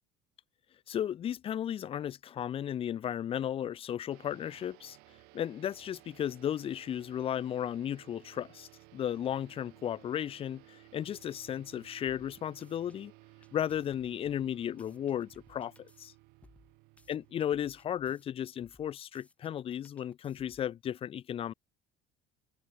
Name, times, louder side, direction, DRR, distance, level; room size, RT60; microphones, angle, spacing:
voice 1, 0.9-5.0 5.3-13.1 13.5-16.1 17.1-21.5, left 10 dB, 35° left, 0.8 m, -35 dB
sound 1, 4.1-18.9, right 26 dB, 75° right, 2.5 m, -58 dB
sound 2, 12.6-13.0 13.4-16.1 16.4-18.3 18.6-20.8, left 2 dB, 10° left, 4.0 m, -63 dB
cardioid pair, 120°, 16 cm